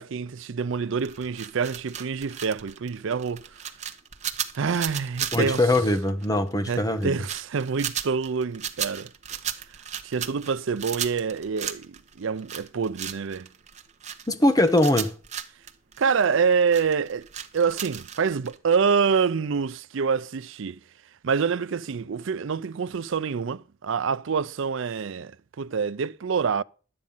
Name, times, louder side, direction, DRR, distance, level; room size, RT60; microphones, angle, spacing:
voice 1, 0.0-3.5 4.5-5.7 6.6-9.1 10.0-13.5 16.0-17.3 17.5-20.8 21.2-26.6, right 6 dB, 65° right, 0.5 m, -26 dB
sound 1, 1.0-18.6, right 9 dB, 35° right, 1.1 m, -35 dB
voice 2, 5.3-7.2 14.3-15.1, left 1 dB, 20° left, 1.1 m, -22 dB
12.0 x 8.9 x 5.5 m
head